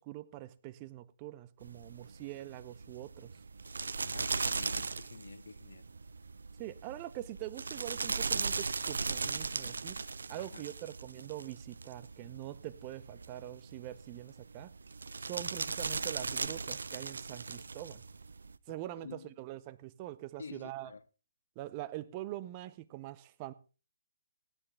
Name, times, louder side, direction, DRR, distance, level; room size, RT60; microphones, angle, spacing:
voice 1, 0.0-3.4 6.6-10.0 10.3-14.7 15.2-18.0 18.7-20.9 21.6-23.5, right 15 dB, 25° right, 0.7 m, -44 dB
sound 1, 1.6-18.6, right 4 dB, 70° right, 0.6 m, -38 dB
voice 2, 4.0-5.9 10.4-10.7 19.0-19.4 20.4-21.0, left 5 dB, 65° left, 0.7 m, -49 dB
15.0 x 11.5 x 3.6 m
figure-of-eight pair, 140°, 0 cm